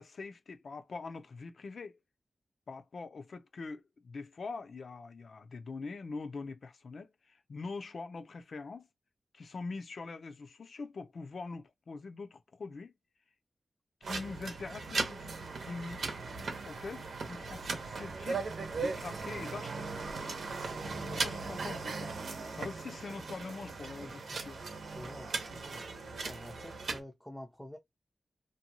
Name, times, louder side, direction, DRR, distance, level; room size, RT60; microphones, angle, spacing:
voice 1, 0.0-2.0 2.7-8.9 9.3-12.9 14.0-15.3 15.6-18.4 18.8-19.9 21.0-22.1 22.5-24.6, left 4 dB, 60° left, 0.4 m, -43 dB
sound 1, 14.0-27.0, right 4 dB, 85° right, 0.7 m, -38 dB
voice 2, 24.9-27.8, left 1 dB, 5° left, 0.5 m, -48 dB
2.7 x 2.2 x 2.8 m
wide cardioid pair, 150°, 0 cm